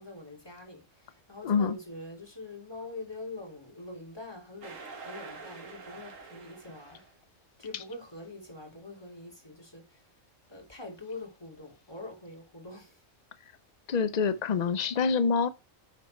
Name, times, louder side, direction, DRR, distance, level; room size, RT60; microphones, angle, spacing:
voice 1, 0.0-7.0 7.6-10.0 10.5-13.0, left 2 dB, 20° left, 2.9 m, -44 dB
voice 2, 1.4-1.7 13.9-15.5, left 5 dB, 75° left, 0.4 m, -26 dB
sound 1, 4.6-7.2, right 4 dB, 65° right, 1.7 m, -46 dB
9.3 x 4.3 x 4.3 m
omnidirectional pair, 1.4 m